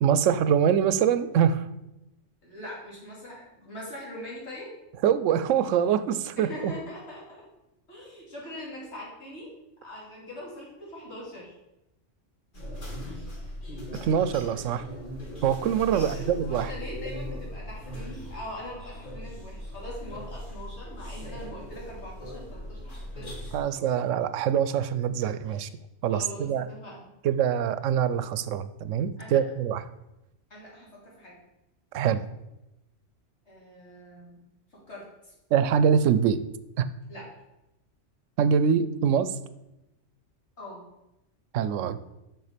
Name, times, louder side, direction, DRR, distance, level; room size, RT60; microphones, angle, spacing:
voice 1, 0.0-1.7 5.0-6.7 14.0-14.9 15.4-16.7 23.5-25.7 26.0-26.7 27.2-29.8 31.9-32.2 35.5-36.4 36.8-36.9 38.4-39.4 41.5-42.0, right 8 dB, 90° right, 13 dB, 0.9 m, -24 dB
voice 2, 2.4-4.7 6.4-7.4 7.9-9.5 9.8-11.5 13.1-13.3 15.9-23.9 24.3-24.4 25.5-25.7 26.1-27.1 29.2-29.4 30.5-31.4 33.5-34.4 34.7-35.3 37.1-37.3 40.6-40.8, left 1 dB, 65° left, -4 dB, 3.0 m, -42 dB
sound 1, 12.5-23.6, equal, 45° left, 1.9 m, -39 dB
6.9 x 6.2 x 5.0 m, 0.94 s
omnidirectional pair, 1.3 m